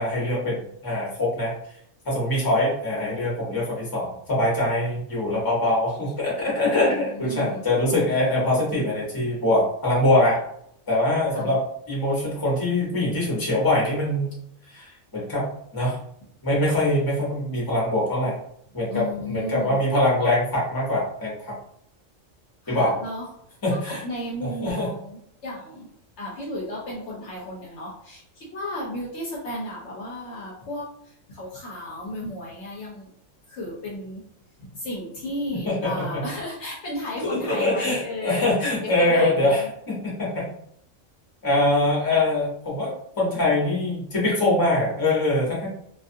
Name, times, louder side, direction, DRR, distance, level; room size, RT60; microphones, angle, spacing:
voice 1, 0.0-1.5 2.0-10.4 10.9-11.6 11.9-14.3 14.7-15.4 15.7-16.0 16.4-18.3 18.7-21.5 22.7-22.9 23.6-24.0 24.4-24.9 35.6-36.2 37.3-40.4 41.4-45.7, left 1 dB, 20° left, -5 dB, 0.8 m, -23 dB
voice 2, 6.8-7.6 11.3-11.6 18.9-19.8 22.6-23.3 23.7-25.9 26.2-33.1 33.5-34.2 34.6-38.5 39.0-39.7, left 1 dB, 65° left, -3 dB, 0.9 m, -34 dB
2.5 x 2.4 x 2.6 m, 0.71 s
omnidirectional pair, 1.4 m